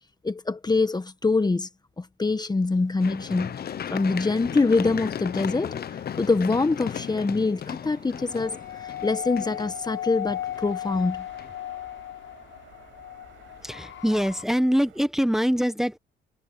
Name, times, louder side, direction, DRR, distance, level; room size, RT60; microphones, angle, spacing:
voice 1, 0.2-1.7 2.0-11.3, left 3 dB, 20° left, 1.3 m, -25 dB
sound 1, 2.6-15.0, right 12 dB, 80° right, 6.6 m, -55 dB
Run, 3.0-10.9 11.4-11.5, left 9 dB, 50° left, 1.0 m, -35 dB
sound 2, 8.1-14.4, left 12 dB, 85° left, 6.7 m, -36 dB
voice 2, 13.6-16.0, equal, ahead, 1.3 m, -24 dB
cardioid pair, 90°, 20 cm